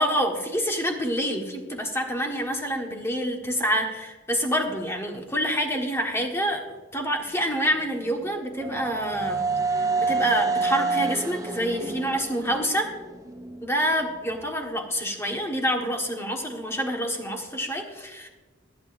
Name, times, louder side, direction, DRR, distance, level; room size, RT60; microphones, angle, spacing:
voice 1, 0.0-6.6 6.9-9.4 9.7-12.9 13.6-18.3, equal, 15° left, 2 dB, 1.5 m, -27 dB
sound 1, 7.8-13.7, right 4 dB, 15° right, 0.6 m, -28 dB
26.0 x 8.7 x 2.6 m, 1.3 s
head